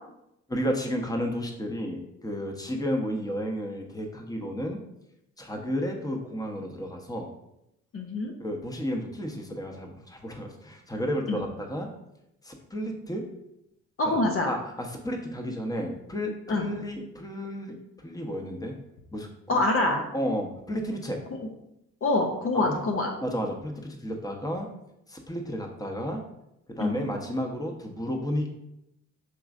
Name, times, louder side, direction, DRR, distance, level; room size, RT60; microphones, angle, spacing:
voice 1, 0.5-4.8 5.4-7.3 8.4-11.9 12.4-13.2 14.0-14.2 14.5-18.8 19.1-19.3 20.1-21.2 22.7-22.8 23.2-24.7 25.1-26.2 26.7-28.5, equal, 10° left, 3 dB, 0.9 m, -32 dB
voice 2, 7.9-8.3 11.3-11.4 14.0-14.5 16.5-16.7 19.5-20.0 22.0-23.1 26.8-27.1, left 2 dB, 40° left, 2 dB, 0.7 m, -25 dB
5.9 x 3.0 x 2.5 m, 0.84 s
supercardioid pair, 55°, 33 cm